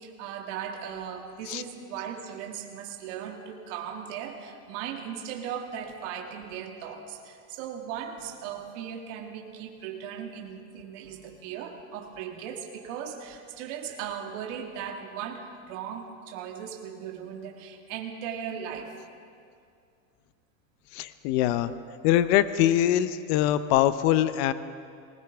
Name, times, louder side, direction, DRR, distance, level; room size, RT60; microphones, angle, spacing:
voice 1, 0.0-18.9, right 8 dB, 60° right, 2 dB, 1.9 m, -38 dB
voice 2, 20.9-21.7 22.0-24.5, left 12 dB, 50° left, 13 dB, 0.7 m, -23 dB
20.0 x 19.5 x 3.5 m, 2.3 s
supercardioid pair, 145°, 42 cm